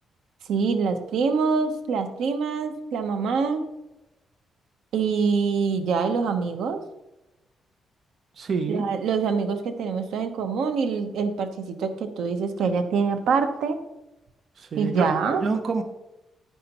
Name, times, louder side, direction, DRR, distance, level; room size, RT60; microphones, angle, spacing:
voice 1, 0.5-3.6 4.9-6.8 8.7-13.8 14.7-15.4, right 5 dB, 80° right, 8 dB, 0.9 m, -25 dB
voice 2, 8.4-8.9 14.6-15.1 15.4-15.8, right 4 dB, 50° right, 7 dB, 0.8 m, -27 dB
10.0 x 9.1 x 3.0 m, 0.97 s
cardioid pair, 140°, 0 cm